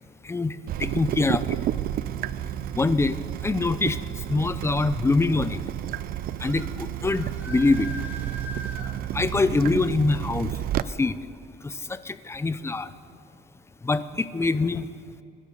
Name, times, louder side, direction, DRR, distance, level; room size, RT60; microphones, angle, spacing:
voice 1, 0.2-1.6 2.7-5.6 6.4-7.9 9.1-11.2 11.6-12.9 13.8-14.9, left 3 dB, 15° left, 14 dB, 0.6 m, -25 dB
Water tap faucet / Drip, 0.7-10.8, right 12 dB, 60° right, 0.5 m, -31 dB
sound 1, 6.4-6.7 7.1-8.9, equal, 10° right, 2.6 m, -40 dB
23.5 x 12.0 x 4.0 m, 2.6 s
cardioid pair, 110°, 17 cm